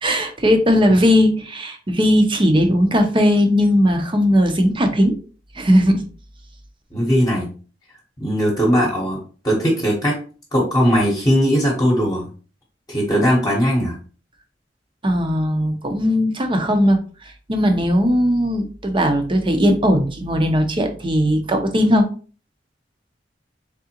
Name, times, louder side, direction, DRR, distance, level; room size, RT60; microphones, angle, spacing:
voice 1, 0.0-5.2 5.6-6.0 15.0-17.0 17.5-22.1, equal, 30° right, 5 dB, 0.7 m, -17 dB
voice 2, 6.9-7.5 8.2-10.2 10.5-12.3 12.9-14.0, equal, 20° left, -4 dB, 1.0 m, -19 dB
3.7 x 3.3 x 2.9 m, 0.37 s
head